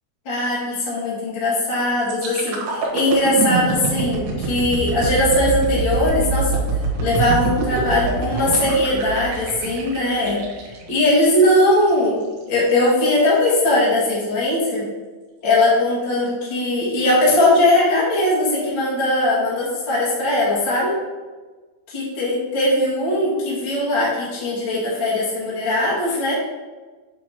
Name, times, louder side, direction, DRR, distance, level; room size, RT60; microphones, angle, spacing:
voice 1, 0.2-6.5 7.0-10.4 10.9-12.2 12.5-14.8 15.4-20.9 21.9-26.3, left 1 dB, 60° left, -6 dB, 1.2 m, -19 dB
sound 1, 2.1-11.9 12.4-12.6, right 3 dB, 65° right, 2.6 m, -25 dB
8.1 x 3.7 x 4.5 m, 1.3 s
omnidirectional pair, 5.5 m